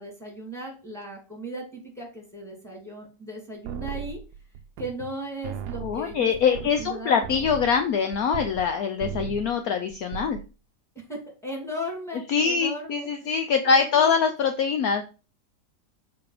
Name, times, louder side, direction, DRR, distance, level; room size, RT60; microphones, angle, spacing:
voice 1, 0.0-4.2 4.8-7.3 11.1-14.3, right 1 dB, ahead, -1 dB, 2.4 m, -37 dB
sound 1, 3.6-5.2 5.4-8.7 9.0-9.6 9.9-10.5, right 8 dB, 75° right, 1.1 m, -37 dB
voice 2, 5.8-10.4 12.3-15.0, left 6 dB, 65° left, 6 dB, 1.0 m, -23 dB
6.9 x 4.1 x 5.0 m, 0.33 s
omnidirectional pair, 1.8 m